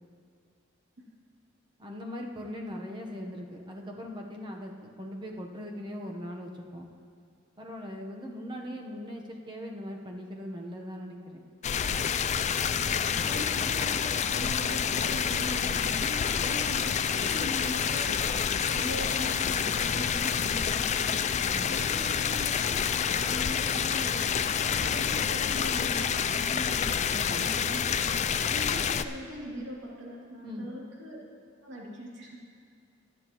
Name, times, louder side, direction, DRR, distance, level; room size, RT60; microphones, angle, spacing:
voice 1, 1.8-6.9 7.6-11.4 17.0-17.2 21.4-21.8 27.1-27.5 30.4-30.7, equal, 25° right, 0 dB, 1.0 m, -40 dB
sound 1, 11.6-29.0, left 7 dB, 35° left, 0.3 m, -28 dB
voice 2, 13.0-27.8 28.5-31.2 31.6-32.4, equal, 60° right, -4 dB, 2.8 m, -41 dB
24.0 x 8.3 x 3.0 m, 2.3 s
head